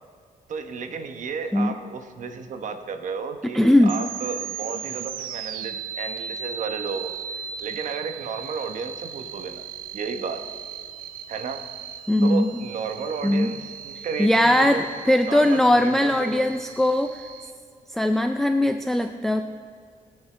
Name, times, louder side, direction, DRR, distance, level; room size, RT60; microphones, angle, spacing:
voice 1, 0.5-9.7 9.9-10.4 11.3-11.7 12.2-14.8 15.2-16.4, right 5 dB, 60° right, 7 dB, 1.0 m, -33 dB
voice 2, 3.5-3.9 12.1-12.5 13.2-13.5 14.2-17.2 17.9-19.4, left 1 dB, 5° left, 6 dB, 0.4 m, -20 dB
sound 1, 3.8-17.5, right 8 dB, 90° right, 0.6 m, -37 dB
21.5 x 8.1 x 3.4 m, 2.3 s
cardioid pair, 135°, 14 cm